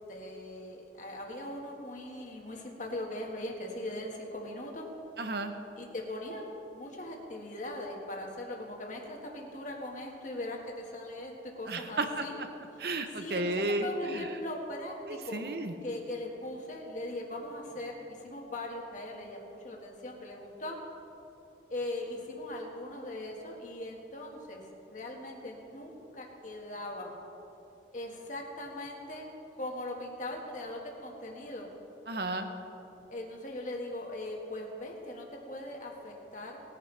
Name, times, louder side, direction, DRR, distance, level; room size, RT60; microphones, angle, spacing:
voice 1, 0.1-4.9 5.8-12.4 13.1-15.4 15.8-20.8 21.7-27.1 27.9-31.7 33.1-36.6, left 1 dB, 45° left, 0 dB, 1.8 m, -40 dB
voice 2, 5.2-5.5 11.7-12.5 12.8-14.3 15.1-15.7 32.1-32.5, right 2 dB, 60° right, 7 dB, 0.9 m, -33 dB
19.5 x 10.5 x 3.4 m, 3.0 s
head